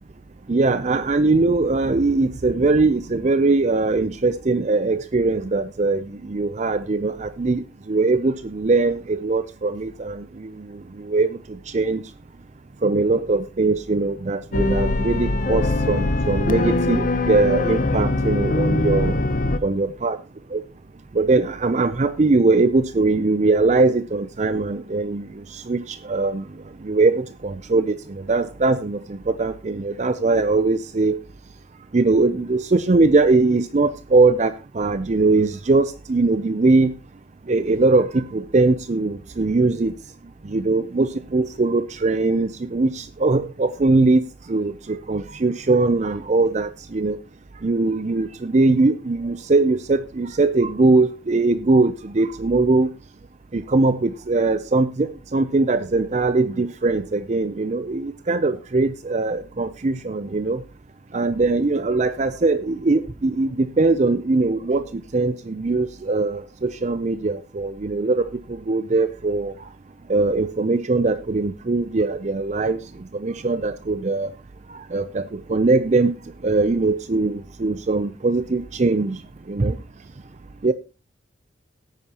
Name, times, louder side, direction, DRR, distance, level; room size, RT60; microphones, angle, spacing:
voice 1, 0.5-12.0 12.8-19.2 19.6-20.2 20.5-20.6 21.1-26.5 26.8-31.2 31.9-36.9 37.5-39.9 40.4-47.2 47.6-52.9 53.5-60.6 61.1-69.5 70.1-72.8 73.1-74.3 74.7-76.1 76.4-79.2 79.5-79.8 80.6-80.7, right 3 dB, 40° right, 12 dB, 0.5 m, -21 dB
sound 1, 14.5-19.6, left 2 dB, 45° left, 0.8 m, -22 dB
17.0 x 9.2 x 2.9 m, 0.31 s
head